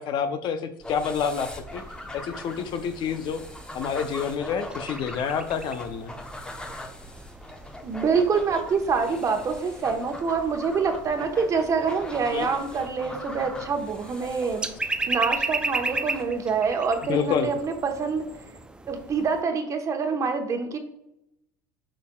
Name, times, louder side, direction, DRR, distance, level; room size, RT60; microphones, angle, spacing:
voice 1, 0.0-1.8 2.1-3.4 3.7-6.1 12.3-12.5 17.1-17.5, left 7 dB, 50° left, 9 dB, 0.7 m, -28 dB
sound 1, 0.8-16.2, left 1 dB, 10° left, 0.8 m, -41 dB
sound 2, 1.7-19.4, right 3 dB, 10° right, 0.4 m, -37 dB
voice 2, 7.8-18.3 18.9-20.8, right 5 dB, 30° right, 5 dB, 1.1 m, -26 dB
8.7 x 5.5 x 2.3 m, 0.80 s
supercardioid pair, 105°, 10 cm